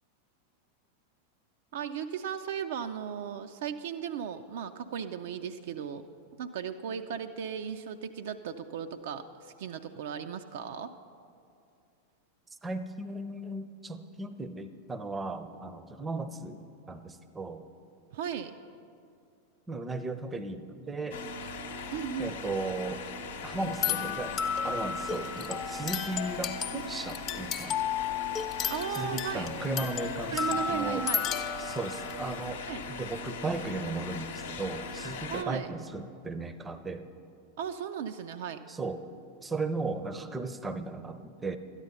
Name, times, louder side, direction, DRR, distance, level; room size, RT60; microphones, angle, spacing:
voice 1, 1.7-6.1 6.4-10.9 18.1-18.5 21.9-22.4 28.6-29.5 30.3-31.3 32.7-32.8 35.3-35.7 37.6-38.6, right 8 dB, 55° right, 7 dB, 0.4 m, -36 dB
voice 2, 12.6-17.6 19.7-21.2 22.2-23.0 23.4-24.4 24.6-27.8 28.9-31.0 31.6-32.6 32.9-37.0 38.7-39.1 39.4-41.6, right 3 dB, 15° right, 11 dB, 0.6 m, -36 dB
sound 1, 21.1-35.4, left 4 dB, 60° left, 0.8 m, -40 dB
sound 2, 23.6-32.5, left 7 dB, 30° left, 0.7 m, -33 dB
12.5 x 9.8 x 5.5 m, 2.4 s
figure-of-eight pair, 90°, 0 cm